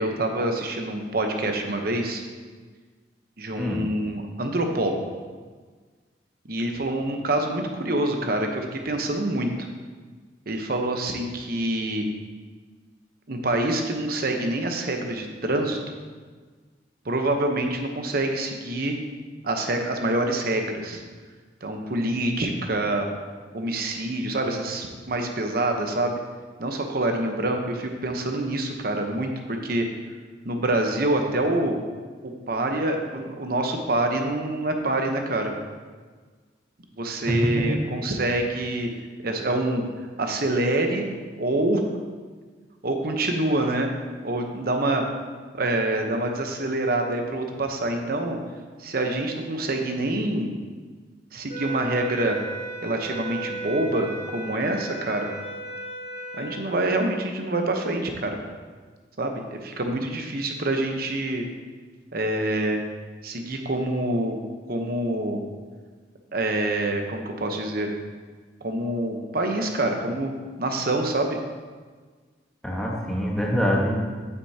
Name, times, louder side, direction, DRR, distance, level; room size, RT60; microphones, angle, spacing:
voice 1, 0.0-2.2 3.4-5.0 6.4-9.7 10.5-12.1 13.3-15.8 17.0-19.0 19.4-21.0 21.6-23.1 23.5-26.2 26.6-29.8 30.4-31.8 32.2-35.5 37.0-38.9 39.2-39.8 40.2-41.1 41.4-41.9 42.8-43.9 44.2-45.0 45.5-48.4 48.8-50.5 51.3-52.4 52.8-55.3 56.3-58.4 59.2-61.4 62.1-62.8 63.2-64.4 64.7-65.4 66.3-67.9 68.6-70.3 70.6-71.4, right 1 dB, 55° right, 4 dB, 0.9 m, -26 dB
voice 2, 37.3-37.8 72.6-74.0, equal, 5° left, -3 dB, 1.2 m, -24 dB
sound 1, 51.5-56.7, right 2 dB, 65° left, 2.6 m, -35 dB
8.9 x 8.1 x 2.8 m, 1.5 s
head